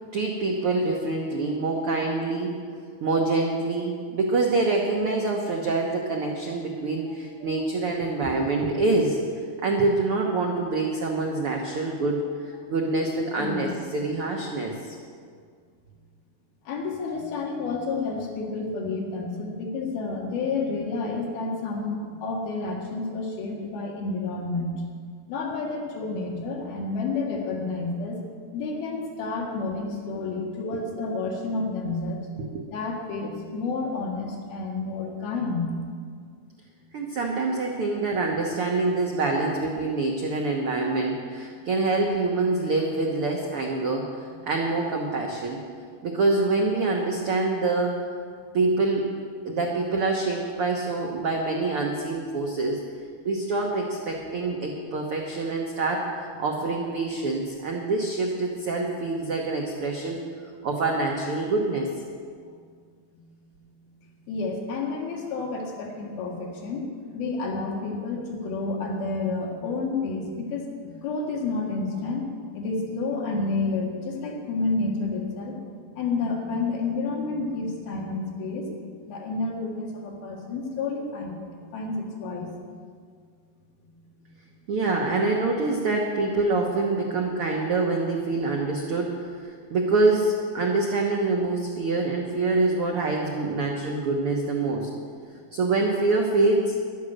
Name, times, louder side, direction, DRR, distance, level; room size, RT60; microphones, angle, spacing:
voice 1, 0.1-2.5 3.0-9.2 9.6-12.2 12.7-15.0 32.4-32.6 36.9-44.2 44.5-45.6 46.0-48.0 48.5-49.1 49.4-52.8 53.2-56.1 56.4-60.2 60.6-61.9 84.7-94.9 95.5-96.8, right 3 dB, 75° right, 0 dB, 1.3 m, -25 dB
voice 2, 13.4-13.7 16.7-24.8 25.3-28.2 28.5-32.2 32.7-35.7 56.5-56.6 63.1-63.3 64.3-66.8 67.1-72.2 72.5-75.6 76.0-78.7 79.1-82.5 84.2-84.3, left 3 dB, 85° left, 0 dB, 3.7 m, -30 dB
13.0 x 11.0 x 6.5 m, 2.1 s
omnidirectional pair, 4.2 m